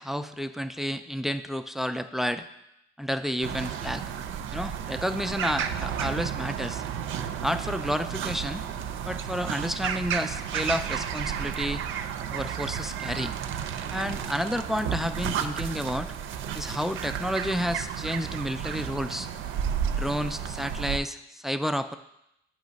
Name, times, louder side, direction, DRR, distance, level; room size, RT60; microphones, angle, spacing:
voice 1, 0.0-2.4 3.0-4.0 4.5-6.8 7.4-8.6 9.1-11.8 12.3-13.3 13.9-16.1 16.5-19.3 20.0-22.0, equal, ahead, 10 dB, 0.3 m, -30 dB
sound 1, 3.4-21.0, right 8 dB, 80° right, 0.5 m, -32 dB
8.5 x 3.1 x 5.1 m, 0.83 s
cardioid pair, 90°, 20 cm